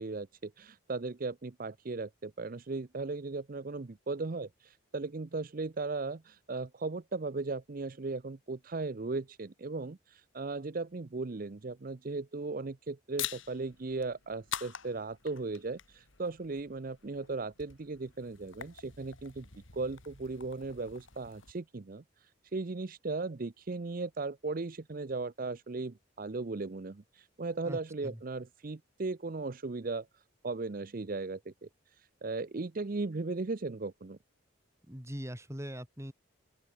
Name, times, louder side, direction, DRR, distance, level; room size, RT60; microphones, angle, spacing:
voice 1, 0.0-19.5 19.7-34.2, right 3 dB, 45° right, 0.6 m, -37 dB
sound 1, 13.1-21.5, left 9 dB, 70° left, 4.0 m, -45 dB
voice 2, 27.6-28.2 34.9-36.1, equal, 15° right, 3.5 m, -41 dB
open air
head